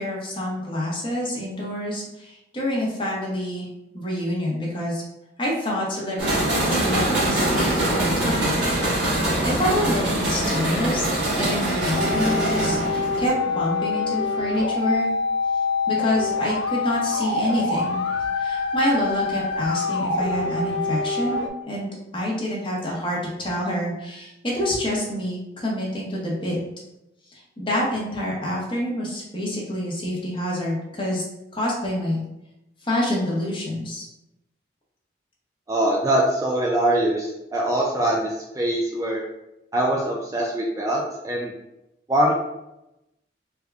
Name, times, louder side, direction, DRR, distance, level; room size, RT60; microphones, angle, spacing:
voice 1, 0.0-3.7 3.9-5.0 5.4-8.8 9.4-15.1 15.9-18.1 18.4-26.6 27.3-31.2 31.5-32.2 32.8-34.1, left 1 dB, 25° left, -4 dB, 0.9 m, -27 dB
sound 1, 6.2-13.3, right 1 dB, 75° right, 1.3 m, -23 dB
sound 2, 12.0-21.5, left 3 dB, 80° left, 0.5 m, -25 dB
voice 2, 35.7-39.2 39.7-41.5 42.1-42.3, right 1 dB, 20° right, -2 dB, 0.3 m, -23 dB
3.5 x 2.2 x 3.4 m, 0.90 s
head